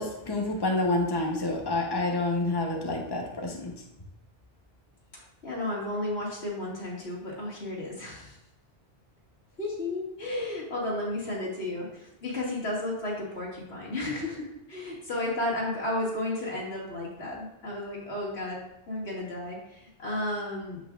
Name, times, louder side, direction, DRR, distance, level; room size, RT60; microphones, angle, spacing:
voice 1, 0.0-3.7, left 2 dB, 25° left, 0 dB, 1.0 m, -28 dB
voice 2, 5.1-8.4 9.6-18.6 18.9-20.8, left 1 dB, 90° left, -5 dB, 2.5 m, -33 dB
8.1 x 7.3 x 2.5 m, 0.85 s
omnidirectional pair, 1.1 m